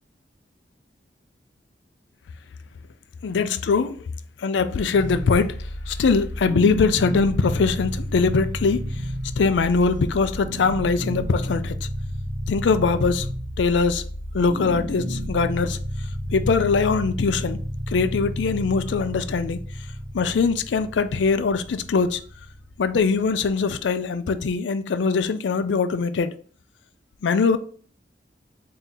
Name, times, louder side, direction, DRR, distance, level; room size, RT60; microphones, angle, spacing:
voice 1, 3.2-4.0 4.4-8.9 9.4-11.9 12.5-13.3 13.6-14.0 14.3-15.8 16.3-17.6 17.9-19.6 20.2-22.2 22.8-26.3 27.2-27.6, left 4 dB, 90° left, 0.4 m, -22 dB
sound 1, 4.9-23.9, equal, 60° right, 0.6 m, -32 dB
3.6 x 2.8 x 4.0 m
head